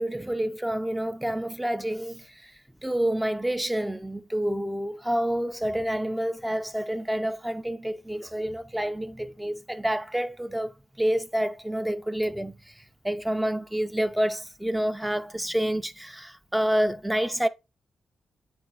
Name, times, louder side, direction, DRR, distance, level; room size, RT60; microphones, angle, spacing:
voice 1, 0.0-2.5 2.8-17.5, right 1 dB, 5° right, 0.7 m, -28 dB
10.5 x 3.9 x 2.5 m
cardioid pair, 105°, 0 cm